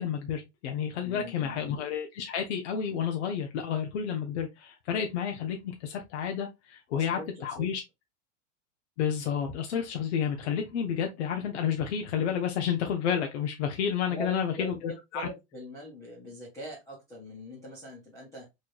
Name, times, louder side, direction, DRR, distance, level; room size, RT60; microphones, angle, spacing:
voice 1, 0.0-7.8 9.0-15.3, left 8 dB, 65° left, 3 dB, 0.8 m, -30 dB
voice 2, 1.0-1.6 6.9-7.7 14.1-18.5, equal, 10° left, -5 dB, 0.4 m, -42 dB
4.2 x 3.1 x 2.3 m, 0.21 s
supercardioid pair, 175°, 37 cm